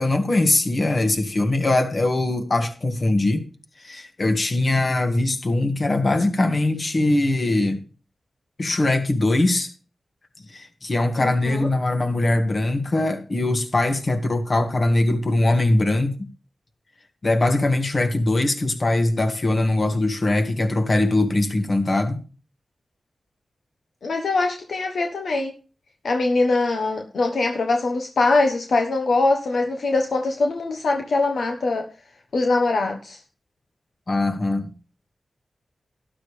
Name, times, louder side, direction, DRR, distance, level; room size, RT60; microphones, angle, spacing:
voice 1, 0.0-3.5 3.8-7.8 8.6-9.7 10.5-16.1 17.2-22.2 34.1-34.7, left 2 dB, 55° left, 6 dB, 2.1 m, -21 dB
voice 2, 11.2-11.7 24.0-25.5 26.0-31.9 32.3-33.2, left 3 dB, 80° left, 3 dB, 1.2 m, -22 dB
12.5 x 11.0 x 3.3 m, 0.35 s
cardioid pair, 40°, 0 cm